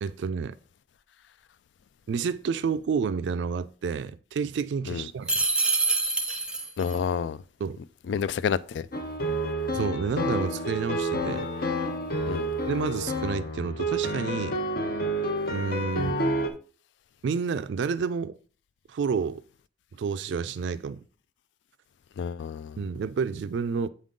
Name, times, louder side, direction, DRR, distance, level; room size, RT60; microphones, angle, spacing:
voice 1, 0.0-0.6 2.1-5.4 7.6-7.8 9.7-11.5 12.7-14.6 15.5-16.2 17.2-18.4 18.9-19.4 20.0-21.0 22.8-23.9, right 5 dB, 85° right, 0.3 m, -29 dB
sound 1, 5.3-7.0, right 3 dB, 5° right, 0.6 m, -26 dB
voice 2, 6.8-7.4 8.1-8.9 12.3-12.5 22.2-22.8, left 6 dB, 85° left, 0.3 m, -29 dB
sound 2, 8.9-16.5, equal, 55° left, 0.8 m, -29 dB
8.2 x 3.7 x 3.7 m
head